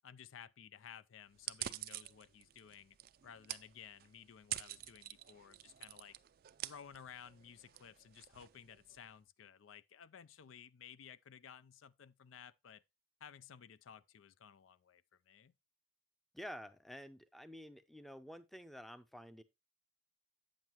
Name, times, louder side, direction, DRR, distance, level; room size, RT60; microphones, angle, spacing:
voice 1, 0.0-3.0 3.2-6.2 6.6-12.8 13.2-15.5, left 8 dB, 90° left, 0.4 m, -56 dB
sound 1, 1.3-9.1, right 13 dB, 50° right, 0.4 m, -48 dB
voice 2, 16.3-19.4, equal, ahead, 0.5 m, -50 dB
8.5 x 7.4 x 3.0 m
head